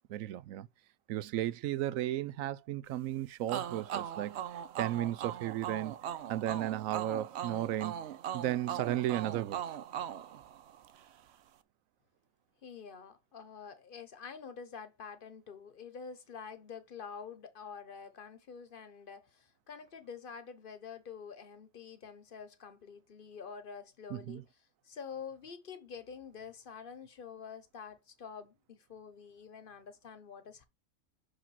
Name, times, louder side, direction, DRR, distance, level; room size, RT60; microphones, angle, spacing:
voice 1, 0.1-0.7 1.1-4.4 4.8-6.0 6.3-8.0 8.3-9.6 24.1-24.4, right 13 dB, 90° right, 1.0 m, -34 dB
sound 1, 3.5-11.1, right 10 dB, 65° right, 0.8 m, -40 dB
voice 2, 12.6-30.7, left 6 dB, 45° left, 1.0 m, -47 dB
5.8 x 5.0 x 4.1 m
omnidirectional pair, 1.4 m